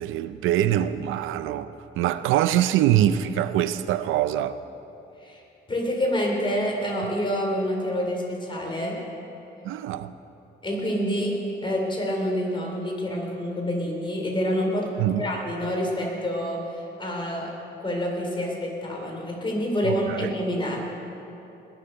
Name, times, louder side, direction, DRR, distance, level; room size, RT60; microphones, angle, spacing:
voice 1, 0.0-4.6 9.6-10.1 15.0-15.3 19.8-20.3, right 12 dB, 85° right, 13 dB, 0.5 m, -24 dB
voice 2, 5.7-9.0 10.6-11.3 11.6-17.5 17.8-20.8, equal, 25° left, -1 dB, 4.1 m, -27 dB
21.0 x 7.9 x 6.8 m, 2.8 s
cardioid pair, 90°, 20 cm